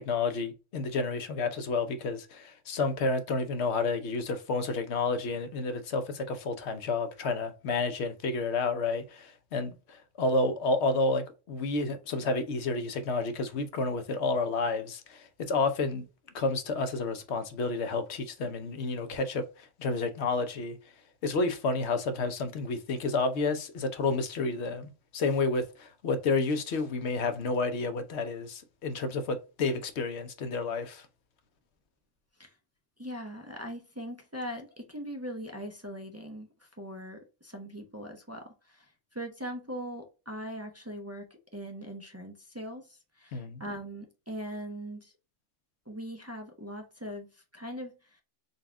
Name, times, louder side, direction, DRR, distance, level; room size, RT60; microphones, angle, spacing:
voice 1, 0.0-16.0 16.3-20.8 21.2-31.1 43.3-43.6, left 3 dB, 65° left, 0.9 m, -30 dB
voice 2, 33.0-45.1 45.9-48.2, equal, 20° right, 0.4 m, -41 dB
4.0 x 2.4 x 3.4 m
omnidirectional pair, 1.3 m